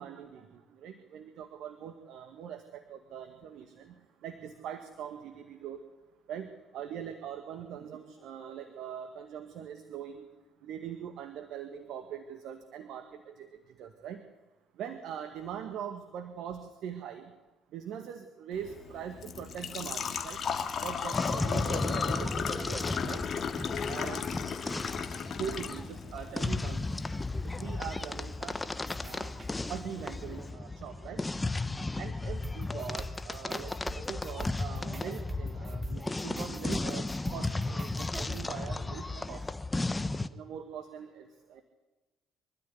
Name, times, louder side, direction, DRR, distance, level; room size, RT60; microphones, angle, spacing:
voice 1, 0.0-3.9 4.2-5.8 6.3-6.5 6.7-10.3 10.6-13.5 13.8-14.2 14.8-17.3 17.7-23.2 23.9-24.3 25.4-27.0 27.4-28.6 29.0-29.3 29.7-31.3 31.9-39.5 40.3-41.6, right 8 dB, 65° right, 8 dB, 1.8 m, -42 dB
Engine / Trickle dribble / Fill (with liquid), 18.5-30.5, left 6 dB, 50° left, 2.2 m, -37 dB
sound 1, 21.1-40.3, left 2 dB, 20° left, 1.3 m, -35 dB
sound 2, 28.8-29.5 32.4-38.4, right 2 dB, 35° right, 3.1 m, -45 dB
25.0 x 13.0 x 9.5 m, 1.2 s
hypercardioid pair, 50°, 0 cm